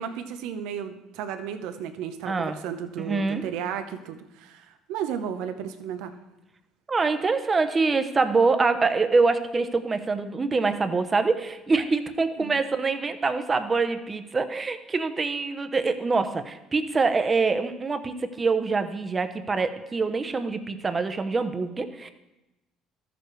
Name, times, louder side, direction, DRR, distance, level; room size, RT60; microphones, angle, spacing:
voice 1, 0.0-6.1 12.4-12.6, right 8 dB, 80° right, 8 dB, 0.8 m, -34 dB
voice 2, 2.3-2.6 3.0-3.4 6.9-22.1, right 4 dB, 30° right, 9 dB, 0.8 m, -25 dB
13.5 x 6.9 x 3.2 m, 0.99 s
supercardioid pair, 80°, 0 cm